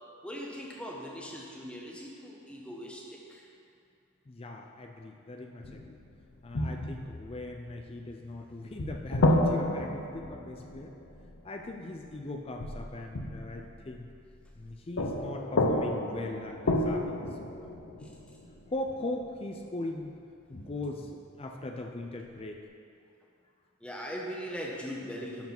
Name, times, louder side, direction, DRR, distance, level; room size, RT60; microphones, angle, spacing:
voice 1, 0.2-3.4 23.8-25.5, equal, 5° left, -3 dB, 1.1 m, -40 dB
voice 2, 4.3-6.0 6.4-10.9 11.4-14.1 14.5-17.9 18.7-20.2 20.5-22.6, left 2 dB, 30° left, 3 dB, 0.4 m, -40 dB
sound 1, 5.6-6.1 6.5-8.4 8.8-11.8 12.6-14.7 15.0-19.3 20.5-21.1, left 1 dB, 75° left, 0.7 m, -31 dB
11.0 x 4.6 x 5.9 m, 2.4 s
head